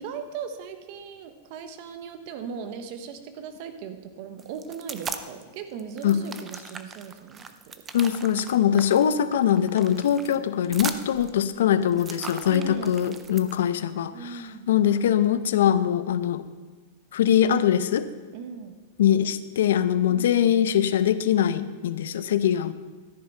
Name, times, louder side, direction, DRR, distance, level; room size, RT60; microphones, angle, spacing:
voice 1, 0.0-7.7 12.4-13.0 14.1-14.7 18.3-18.8 20.1-20.4, right 6 dB, 35° right, 8 dB, 1.0 m, -38 dB
sound 1, 4.4-5.4 5.8-13.6, right 5 dB, 10° right, 0.4 m, -39 dB
voice 2, 7.9-16.4 17.1-18.1 19.0-22.7, left 9 dB, 80° left, 13 dB, 0.7 m, -22 dB
13.5 x 10.5 x 4.5 m, 1.4 s
supercardioid pair, 180°, 0 cm